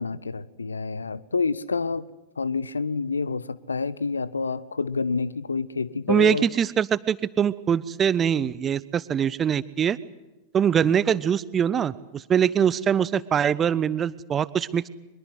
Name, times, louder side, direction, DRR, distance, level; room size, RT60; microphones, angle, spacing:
voice 1, 0.0-2.0 2.4-6.4, left 4 dB, 75° left, 0.7 m, -28 dB
voice 2, 6.1-10.0 10.5-14.9, right 8 dB, 25° right, 0.8 m, -23 dB
23.5 x 22.0 x 8.0 m
figure-of-eight pair, 90°, 0 cm